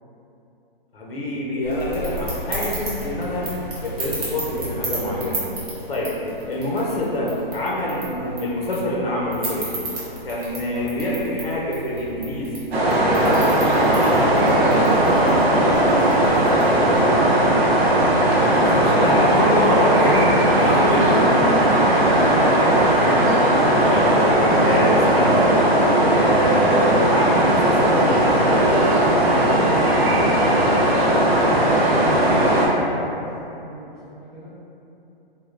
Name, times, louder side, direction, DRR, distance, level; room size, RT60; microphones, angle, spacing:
voice 1, 0.9-3.5 3.8-5.5 5.9-6.2 6.5-9.7 10.2-12.6 13.1-14.9 18.4-21.4 23.8-24.2 24.6-25.5 26.0-28.9, left 1 dB, 75° left, -4 dB, 0.7 m, -25 dB
sound 1, 1.6-17.3, right 1 dB, 40° right, 0.9 m, -34 dB
sound 2, 12.7-32.7, right 1 dB, 85° right, 0.7 m, -17 dB
voice 2, 30.6-33.2 33.6-34.5, equal, 5° left, -19 dB, 0.6 m, -39 dB
3.5 x 2.3 x 2.4 m, 2.9 s
hypercardioid pair, 175°, 30 cm